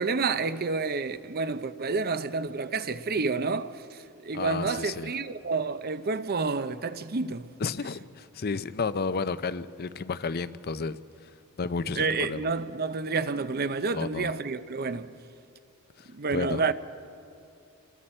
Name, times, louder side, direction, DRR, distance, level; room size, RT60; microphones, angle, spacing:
voice 1, 0.0-7.5 12.0-15.1 16.1-16.7, right 4 dB, 45° right, 0.7 m, -29 dB
voice 2, 4.3-5.1 7.6-11.3 11.6-12.5 13.9-14.3 16.0-16.7, left 4 dB, 45° left, 0.5 m, -32 dB
28.5 x 21.0 x 4.4 m
head